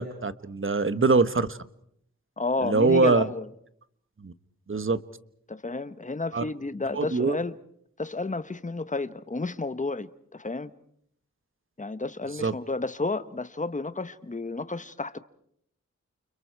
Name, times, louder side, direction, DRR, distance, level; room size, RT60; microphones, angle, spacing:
voice 1, 0.0-1.6 2.6-3.3 4.2-4.3 4.7-5.0 6.3-6.4 6.9-7.4 12.4-12.5, right 4 dB, 45° right, 1.3 m, -23 dB
voice 2, 2.4-3.5 5.5-7.6 8.0-10.7 11.8-15.2, left 3 dB, 25° left, 1.2 m, -31 dB
29.5 x 29.5 x 4.7 m
wide cardioid pair, 65°, 30 cm